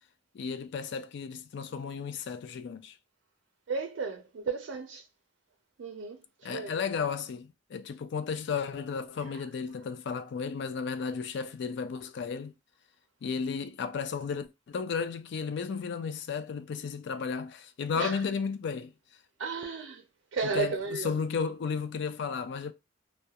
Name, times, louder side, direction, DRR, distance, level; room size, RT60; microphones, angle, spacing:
voice 1, 0.3-3.0 6.4-12.5 13.2-18.9 20.4-22.7, left 5 dB, 60° left, 0.4 m, -34 dB
voice 2, 3.7-5.1 5.8-6.8 9.2-9.4 17.9-18.2 19.4-20.0 20.3-21.1, right 4 dB, 80° right, 0.4 m, -34 dB
2.3 x 2.1 x 2.7 m
head